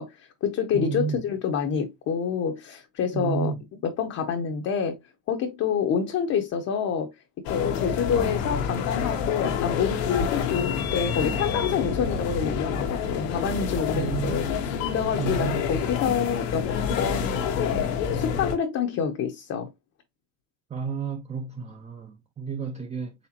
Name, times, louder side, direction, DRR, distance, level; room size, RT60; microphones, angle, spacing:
voice 1, 0.0-5.0 5.3-7.1 7.4-16.7 17.0-19.7, left 7 dB, 40° left, 0.7 m, -28 dB
voice 2, 0.7-1.2 3.1-3.6 13.9-14.4 15.2-15.6 20.7-23.1, right 7 dB, 20° right, 0.5 m, -31 dB
sound 1, 7.5-18.6, left 7 dB, 85° left, 1.1 m, -28 dB
4.2 x 3.6 x 2.8 m
supercardioid pair, 105°, 37 cm